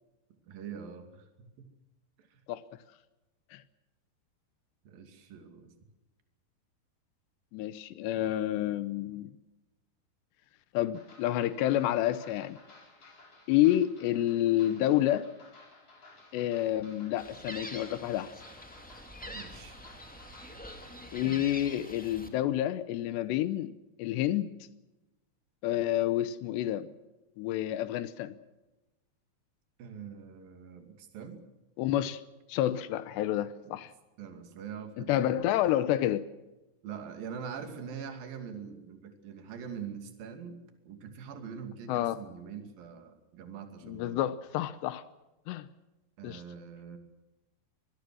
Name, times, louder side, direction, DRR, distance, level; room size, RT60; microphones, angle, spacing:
voice 1, 0.5-1.7 2.2-2.4 4.9-5.7 19.3-19.8 21.2-21.4 29.8-31.5 33.6-33.8 34.2-35.6 36.8-40.6 40.9-44.3 46.2-47.0, right 7 dB, 60° right, 4.1 m, -44 dB
voice 2, 7.5-9.3 10.7-12.6 13.5-15.3 16.3-18.3 21.1-24.5 25.6-26.9 27.4-28.4 31.8-32.2 32.5-33.9 35.0-36.2 41.9-42.2 43.8-45.0 45.5-45.7 46.2-46.4, left 13 dB, 85° left, 3.0 m, -29 dB
sound 1, 10.9-21.5, left 2 dB, 35° left, 5.5 m, -56 dB
Gull seagull, 17.2-22.3, equal, 5° left, 1.7 m, -46 dB
25.5 x 20.0 x 6.3 m
omnidirectional pair, 4.8 m